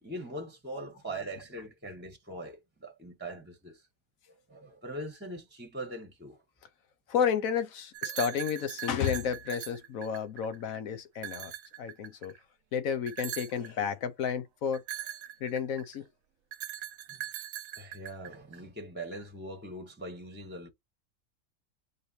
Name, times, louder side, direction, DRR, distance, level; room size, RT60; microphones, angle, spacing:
voice 1, 0.0-3.9 4.3-6.4 17.1-17.2 17.8-20.7, right 1 dB, 10° right, 1.0 m, -42 dB
voice 2, 7.1-11.5 11.8-12.3 12.7-14.8 15.4-16.1, left 7 dB, 75° left, 1.3 m, -31 dB
sound 1, 7.9-10.6 11.2-12.4 13.1-13.7 14.7-16.0 16.5-18.6, right 11 dB, 80° right, 1.1 m, -40 dB
5.3 x 3.1 x 2.8 m
omnidirectional pair, 1.4 m